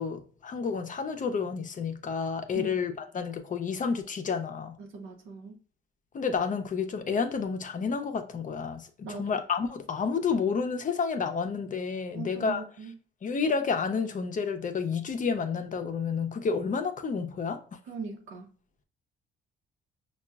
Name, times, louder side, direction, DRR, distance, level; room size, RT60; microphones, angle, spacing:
voice 1, 0.0-4.8 6.1-12.6 13.2-17.6, left 5 dB, 40° left, 0.6 m, -30 dB
voice 2, 4.8-5.6 9.0-9.4 12.1-13.0 17.8-18.5, right 4 dB, 85° right, 0.9 m, -40 dB
5.6 x 2.3 x 2.3 m
cardioid pair, 90°, 20 cm